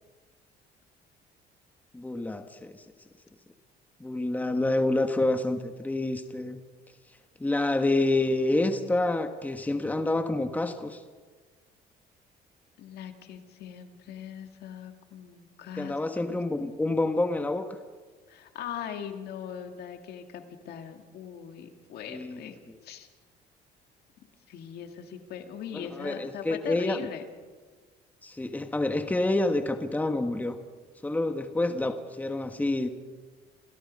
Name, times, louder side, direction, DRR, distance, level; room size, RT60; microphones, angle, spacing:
voice 1, 1.9-2.8 4.0-6.6 7.4-11.0 15.8-17.7 22.1-22.4 25.7-27.0 28.2-30.6 31.0-32.9, left 2 dB, 10° left, 7 dB, 1.3 m, -28 dB
voice 2, 12.8-16.0 16.3-16.4 18.3-23.1 24.5-27.3, left 8 dB, 70° left, 5 dB, 2.2 m, -40 dB
28.0 x 17.0 x 5.4 m, 1.4 s
cardioid pair, 110°, 17 cm